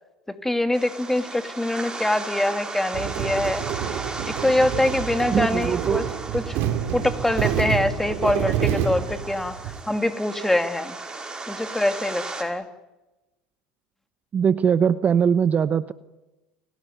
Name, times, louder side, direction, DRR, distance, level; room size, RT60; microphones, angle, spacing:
voice 1, 0.3-3.6 4.2-6.1 6.3-6.6 6.9-11.0 11.5-12.7, left 1 dB, 5° left, 8 dB, 2.5 m, -24 dB
sound 1, 0.7-12.4, right 3 dB, 15° right, 6.1 m, -36 dB
sound 2, 2.9-9.8, right 9 dB, 60° right, 3.1 m, -28 dB
voice 2, 5.3-6.0 14.3-15.9, right 7 dB, 35° right, 13 dB, 1.0 m, -21 dB
30.0 x 18.0 x 9.3 m, 1.0 s
hypercardioid pair, 85°, 4 cm